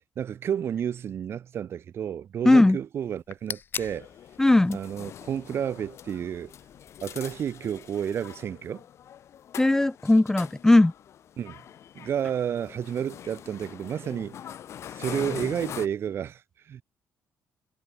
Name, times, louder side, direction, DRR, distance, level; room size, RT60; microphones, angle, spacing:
voice 1, 0.2-4.1 4.7-6.5 7.0-8.8 11.4-11.6 11.9-14.4 14.9-16.8, right 9 dB, 45° right, 0.6 m, -31 dB
voice 2, 2.5-2.8 4.4-4.8 9.6-10.9, left 2 dB, 10° left, 0.3 m, -18 dB
sound 1, 3.0-8.2, left 6 dB, 40° left, 2.7 m, -43 dB
sound 2, 3.9-15.9, left 10 dB, 55° left, 1.3 m, -43 dB
cardioid pair, 135°, 6 cm